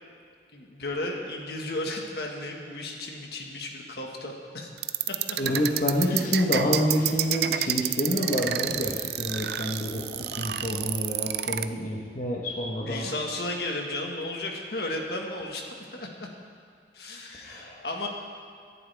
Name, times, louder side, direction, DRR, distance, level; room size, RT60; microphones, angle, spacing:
voice 1, 0.5-4.7 5.1-5.4 6.0-6.4 12.8-16.3 16.9-18.1, left 2 dB, 65° left, 1 dB, 1.7 m, -34 dB
sound 1, 4.8-11.6, right 12 dB, 65° right, 0.5 m, -28 dB
voice 2, 5.4-13.1 17.4-17.8, equal, 45° left, -3 dB, 1.3 m, -28 dB
23.0 x 11.0 x 3.5 m, 2.2 s
head